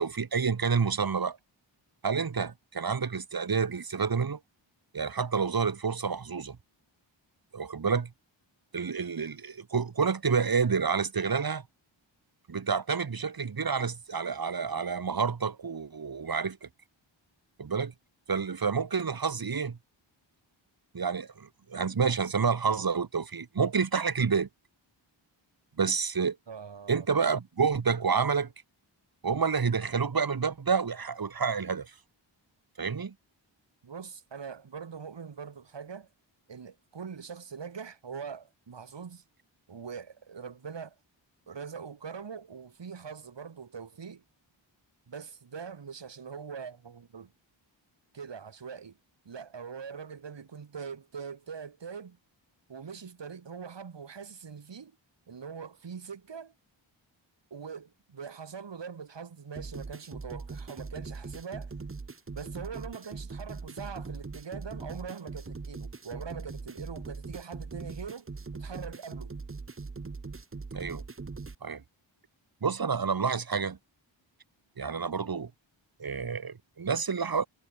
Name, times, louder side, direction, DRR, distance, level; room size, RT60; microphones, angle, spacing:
voice 1, 0.0-1.4 2.0-4.4 4.9-6.6 7.5-8.1 8.7-11.6 12.5-16.7 17.6-17.9 18.3-19.8 20.9-24.5 25.8-26.4 26.9-28.5 29.2-31.9 32.8-33.1 70.7-71.0 71.6-71.8 72.6-73.8 74.8-75.5 76.0-77.5, right 5 dB, 50° right, 1.8 m, -29 dB
voice 2, 26.5-27.1 33.8-36.1 36.5-39.2 39.7-41.0 41.5-44.2 45.1-47.3 48.1-49.0 49.2-52.2 52.7-54.9 55.3-56.5 57.5-61.7 62.3-68.3 68.5-69.3, right 6 dB, 65° right, 2.5 m, -42 dB
sound 1, 59.6-71.6, right 4 dB, 25° right, 1.1 m, -41 dB
wide cardioid pair, 100°, 47 cm